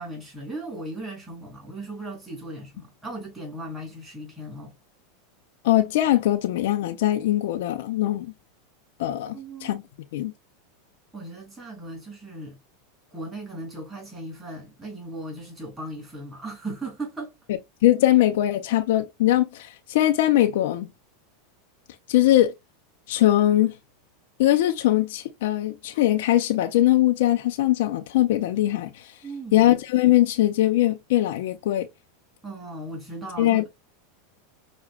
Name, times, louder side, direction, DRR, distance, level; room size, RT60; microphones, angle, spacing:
voice 1, 0.0-4.7 9.3-9.8 11.1-12.6 13.1-17.3 29.2-29.7 32.4-33.7, right 2 dB, 10° right, 2.5 m, -37 dB
voice 2, 5.6-8.3 9.0-9.8 10.1-10.3 17.8-20.9 22.1-22.5 23.1-23.8 24.4-29.1 29.5-31.9 33.4-33.7, left 14 dB, 70° left, 0.4 m, -21 dB
5.9 x 2.1 x 2.2 m
hypercardioid pair, 110°, 0 cm